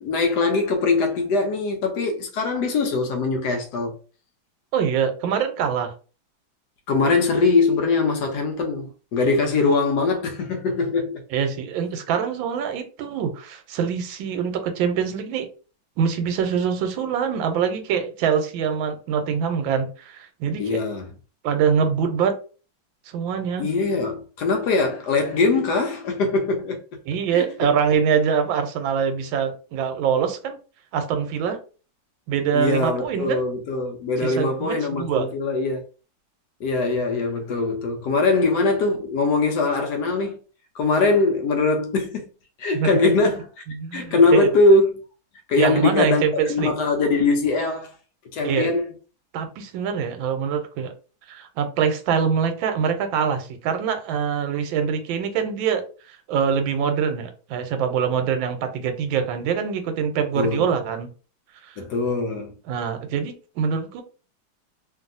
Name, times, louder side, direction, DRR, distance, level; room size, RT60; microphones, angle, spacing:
voice 1, 0.0-4.0 6.9-11.2 20.6-21.1 23.6-26.8 27.3-27.4 32.5-35.8 36.6-40.4 40.7-42.3 42.6-43.5 43.9-44.9 45.5-47.9 48.3-48.9 60.4-60.7 61.8-62.5, left 3 dB, 75° left, 1.0 m, -22 dB
voice 2, 4.7-5.9 11.3-15.5 16.0-20.8 21.4-22.4 23.1-23.7 27.1-30.6 30.9-31.6 32.3-33.4 34.2-35.3 42.7-43.1 43.8-44.5 45.6-46.7 48.4-48.7 49.3-50.9 51.3-61.1 61.6-61.7 62.7-64.0, right 7 dB, 85° right, 1.4 m, -24 dB
2.9 x 2.7 x 2.5 m
omnidirectional pair, 2.1 m